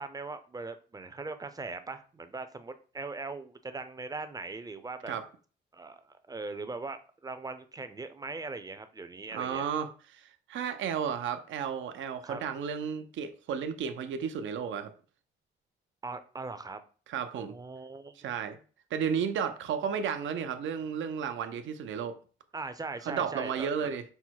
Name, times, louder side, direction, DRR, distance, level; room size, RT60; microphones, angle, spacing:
voice 1, 0.0-5.1 5.7-9.7 12.2-12.4 16.0-16.8 17.5-18.3 22.5-24.0, right 3 dB, 20° right, 0.6 m, -40 dB
voice 2, 9.3-14.9 17.1-17.5 18.2-18.6 18.9-22.2 23.0-24.0, right 7 dB, 75° right, 0.7 m, -33 dB
5.6 x 2.1 x 4.6 m
cardioid pair, 90°, 20 cm